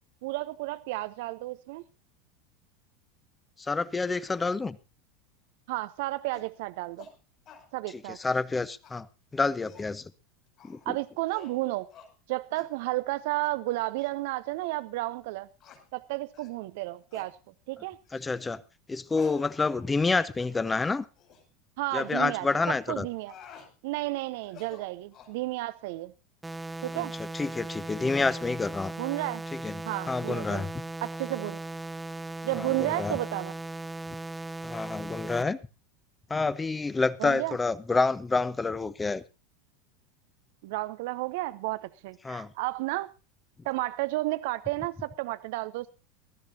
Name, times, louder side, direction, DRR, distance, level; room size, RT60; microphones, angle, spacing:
voice 1, 0.2-1.8 5.7-7.1 7.7-8.2 10.9-11.9 12.3-15.5 15.9-17.4 17.7-18.0 21.8-23.3 23.8-26.1 26.8-27.1 29.0-29.4 29.8-30.7 31.0-31.6 32.4-33.5 37.2-37.6 40.6-43.1 43.6-45.9, right 19 dB, 60° right, 0.7 m, -32 dB
voice 2, 3.6-4.8 8.2-9.1 9.3-10.1 10.6-10.8 18.1-18.6 18.9-21.1 21.9-23.1 26.9-27.1 27.3-28.9 29.5-30.7 32.5-33.2 34.6-35.6 36.3-39.2 42.2-42.5, left 3 dB, 15° left, 1.0 m, -28 dB
sound 1, 6.3-6.5 7.0-7.1 7.5-7.7 8.1-8.5 8.8-8.9 9.4-9.9 10.6-10.9 11.3-11.6 11.9-12.1 12.5-12.7 13.3-13.5 14.0-14.1 14.7-14.8 15.6-15.8 16.3-16.6 17.1-17.3 18.1-18.3 19.1-20.1 20.4-20.5 21.2-21.4 22.0-22.2 23.0-23.7 24.4-25.4, left 6 dB, 45° left, 5.4 m, -51 dB
sound 2, 26.4-35.4, right 2 dB, 10° right, 0.7 m, -38 dB
22.0 x 13.0 x 2.8 m
hypercardioid pair, 80°, 0 cm